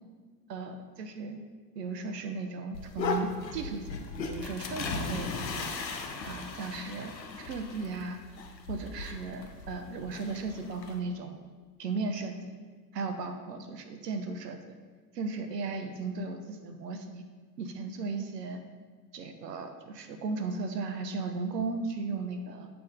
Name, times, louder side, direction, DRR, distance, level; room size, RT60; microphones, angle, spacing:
voice 1, 0.5-1.4 1.8-5.8 6.2-8.2 8.7-11.4 11.8-12.4 12.9-14.7 15.1-17.2 17.6-18.6 19.1-22.7, right 3 dB, 75° right, 7 dB, 0.8 m, -36 dB
sound 1, 2.7-11.0, left 4 dB, 85° left, 0.7 m, -37 dB
8.8 x 3.3 x 4.0 m, 1.5 s
figure-of-eight pair, 75°, 50 cm